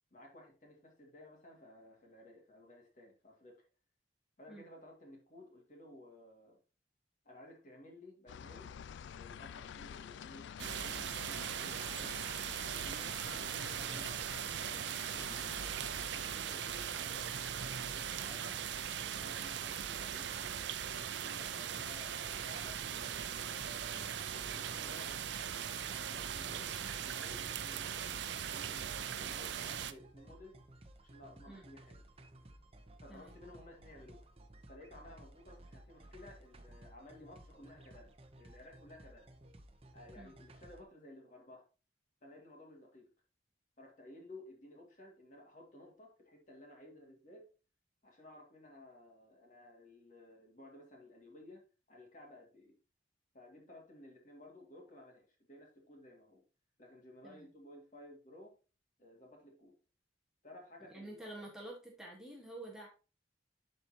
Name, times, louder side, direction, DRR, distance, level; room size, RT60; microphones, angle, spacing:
voice 1, 0.1-3.7 4.4-6.6 7.2-8.7 9.1-15.5 16.0-18.6 19.0-20.7 21.1-22.8 23.3-25.5 26.0-30.6 31.0-32.1 33.0-34.3 34.7-39.3 39.9-41.7 42.2-43.1 43.8-47.5 48.0-52.8 53.3-56.4 56.8-58.5 59.0-59.7 60.4-61.5, left 1 dB, 40° left, 0 dB, 2.2 m, -56 dB
sound 1, 8.3-16.3, left 7 dB, 75° left, 0.3 m, -50 dB
sound 2, 10.6-29.9, right 8 dB, 70° right, 0.5 m, -39 dB
sound 3, 22.4-40.8, right 1 dB, 30° right, 0.8 m, -57 dB
voice 2, 60.9-62.9, right 1 dB, 5° right, -3 dB, 1.5 m, -49 dB
11.5 x 4.4 x 2.9 m, 0.33 s
head